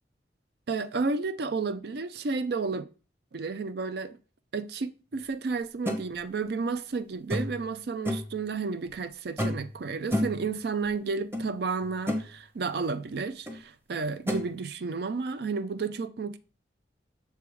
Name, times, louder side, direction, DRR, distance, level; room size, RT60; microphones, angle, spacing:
voice 1, 0.7-2.8 3.3-4.2 4.5-16.4, right 4 dB, 60° right, 0.5 m, -32 dB
sound 1, 5.9-6.0 7.3-7.6 8.0-8.3 9.4-9.7 10.1-10.4 11.3-11.4 11.8-12.3 13.5-13.6 14.3-14.4, left 1 dB, 15° right, 0.8 m, -29 dB
6.8 x 3.5 x 4.7 m
head